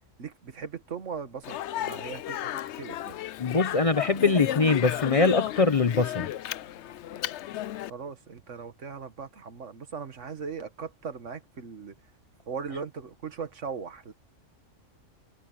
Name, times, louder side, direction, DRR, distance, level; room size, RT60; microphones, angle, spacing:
voice 1, 0.2-3.2 7.9-12.0 12.5-14.1, right 5 dB, 75° right, 1.8 m, -39 dB
Speech, 1.4-7.9, left 12 dB, 70° left, 0.8 m, -33 dB
voice 2, 3.4-6.3, left 4 dB, 35° left, 0.7 m, -23 dB
omnidirectional pair, 1.3 m